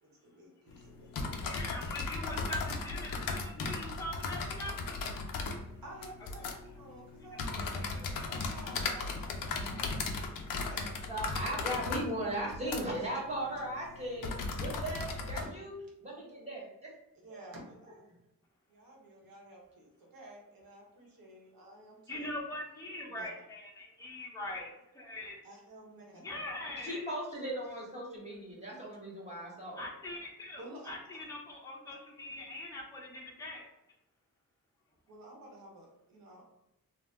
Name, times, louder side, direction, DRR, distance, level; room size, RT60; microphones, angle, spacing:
voice 1, 0.0-1.6 5.8-7.8 8.1-10.9 15.4-15.5 17.2-18.2 18.7-22.4 23.1-23.3 25.4-26.2 30.6-31.2 35.1-36.4, right 1 dB, 70° right, -1 dB, 1.0 m, -52 dB
Typing on keyboard, 0.7-15.4, left 3 dB, 65° left, 0.5 m, -37 dB
voice 2, 1.5-5.0 7.6-8.3 22.1-25.4 26.2-27.0 29.8-33.7, left 1 dB, 10° left, -3 dB, 0.7 m, -42 dB
voice 3, 11.1-15.7 16.0-16.9 17.3-17.4 26.8-29.8, right 1 dB, 20° right, -5 dB, 1.0 m, -38 dB
2.7 x 2.0 x 3.3 m, 0.86 s
cardioid pair, 110°, 36 cm